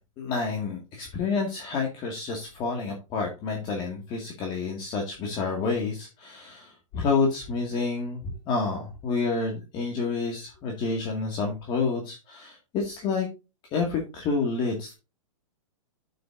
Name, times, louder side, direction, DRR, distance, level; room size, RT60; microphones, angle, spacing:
voice 1, 0.2-13.3 13.7-14.9, left 4 dB, 25° left, 1 dB, 2.1 m, -29 dB
9.4 x 7.8 x 2.6 m, 0.28 s
hypercardioid pair, 155°, 18 cm